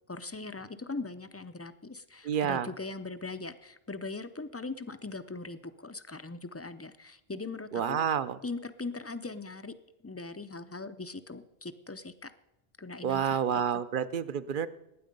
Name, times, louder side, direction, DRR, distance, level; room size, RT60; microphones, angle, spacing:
voice 1, 0.1-8.0 8.4-9.7 10.0-12.3 12.8-13.4, left 3 dB, 20° left, 11 dB, 0.4 m, -40 dB
voice 2, 2.2-2.7 7.7-8.4 13.0-14.7, right 8 dB, 60° right, 14 dB, 0.8 m, -29 dB
19.5 x 9.4 x 5.3 m, 0.92 s
omnidirectional pair, 1.1 m